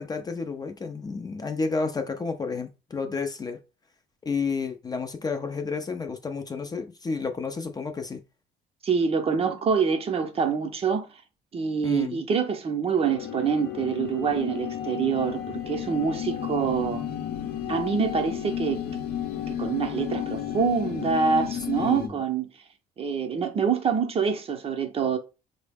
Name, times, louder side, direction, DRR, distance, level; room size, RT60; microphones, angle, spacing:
voice 1, 0.0-3.6 4.2-8.2 11.8-12.2 21.8-22.1, left 4 dB, 25° left, 0.4 m, -31 dB
voice 2, 8.8-11.1 11.5-17.0 17.7-18.8 19.5-22.5 23.0-25.2, right 6 dB, 35° right, 0.6 m, -26 dB
sound 1, 13.0-22.1, left 9 dB, 70° left, 0.6 m, -32 dB
3.8 x 2.0 x 3.4 m
cardioid pair, 110°, 17 cm